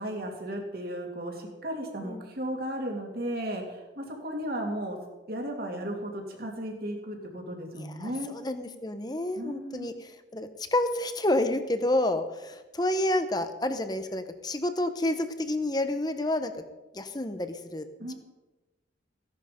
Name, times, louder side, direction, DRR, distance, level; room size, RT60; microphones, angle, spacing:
voice 1, 0.0-5.0 5.3-8.3 9.4-9.9 18.0-18.1, right 1 dB, 50° right, 1 dB, 2.7 m, -35 dB
voice 2, 7.7-16.5 16.9-17.8, left 1 dB, 20° left, 9 dB, 1.0 m, -29 dB
16.5 x 11.0 x 5.2 m, 1.1 s
head